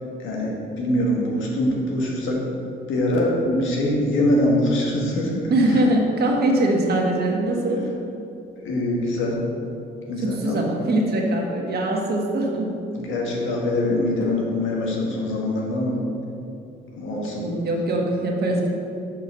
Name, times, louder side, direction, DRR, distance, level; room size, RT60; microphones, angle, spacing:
voice 1, 0.2-2.4 2.9-5.5 8.6-9.4 10.1-10.7 13.0-16.0 16.9-17.5, left 1 dB, 80° left, -2 dB, 1.5 m, -23 dB
voice 2, 5.5-8.0 10.2-12.7 17.4-18.7, right 1 dB, 55° right, 0 dB, 1.4 m, -22 dB
6.9 x 4.5 x 5.5 m, 2.6 s
cardioid pair, 90°, 20 cm